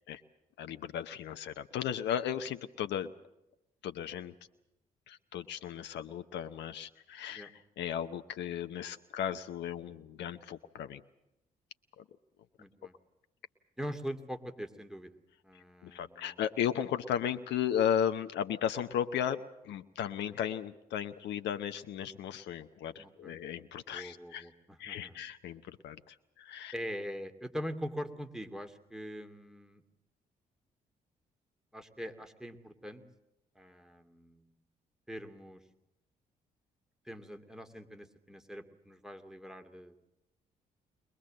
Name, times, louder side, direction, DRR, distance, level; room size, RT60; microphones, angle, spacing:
voice 1, 0.6-3.1 3.8-4.3 5.1-7.5 7.8-11.0 12.0-12.1 15.5-24.5 24.8-26.7, left 9 dB, 65° left, 10 dB, 0.8 m, -35 dB
voice 2, 12.6-12.9 13.8-15.2 15.4-16.4 23.0-23.4 23.9-25.2 26.7-29.8 31.7-33.0 33.6-34.4 35.1-35.6 37.0-39.9, equal, 5° right, 6 dB, 2.7 m, -43 dB
22.0 x 21.5 x 7.7 m, 0.91 s
hypercardioid pair, 45°, 19 cm